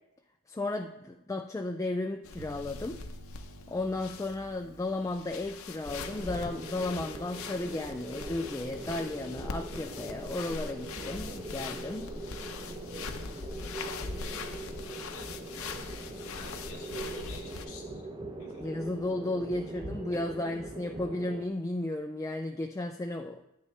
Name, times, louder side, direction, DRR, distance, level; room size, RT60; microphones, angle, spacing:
voice 1, 0.5-3.0 3.7-12.1 18.6-23.4, left 2 dB, 15° left, 5 dB, 0.3 m, -34 dB
sound 1, 2.2-17.7, left 4 dB, 65° left, 0.7 m, -42 dB
sound 2, 2.4-11.7, right 1 dB, 70° right, 1.0 m, -55 dB
sound 3, 5.8-21.5, right 2 dB, 20° right, 0.7 m, -42 dB
voice 2, 13.5-14.1 14.8-15.4 16.1-18.0 18.4-18.7, left 3 dB, 85° left, -2 dB, 1.0 m, -49 dB
9.8 x 9.4 x 3.3 m, 0.86 s
head